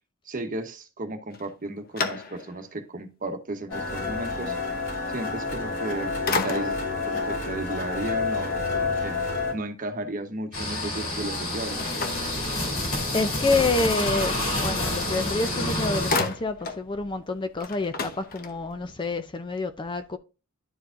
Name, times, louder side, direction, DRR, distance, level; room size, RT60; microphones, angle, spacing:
voice 1, 0.3-4.7 5.1-6.2 6.4-11.8, right 2 dB, 40° right, 1.0 m, -34 dB
sound 1, 1.3-2.7 3.3-3.4 5.6-5.9 6.3-7.0 11.8-13.1 15.2-15.3 15.5-16.9 17.2-17.3 17.6-18.8, left 3 dB, 45° left, 0.8 m, -32 dB
sound 2, 3.7-9.5, left 4 dB, 60° left, 3.0 m, -29 dB
sound 3, 10.5-16.2, left 1 dB, 90° left, 3.2 m, -28 dB
voice 2, 13.1-20.2, left 3 dB, 25° left, 0.4 m, -28 dB
11.5 x 4.8 x 2.5 m
head